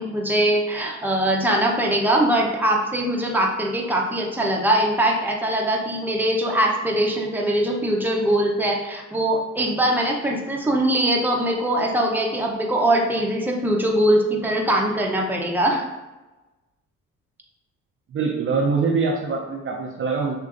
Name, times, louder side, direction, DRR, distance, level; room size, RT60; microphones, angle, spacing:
voice 1, 0.0-15.9, right 1 dB, 5° right, -1 dB, 0.7 m, -22 dB
voice 2, 18.1-20.4, right 4 dB, 45° right, 1 dB, 0.5 m, -23 dB
6.2 x 2.6 x 2.5 m, 1.1 s
cardioid pair, 90°, 30 cm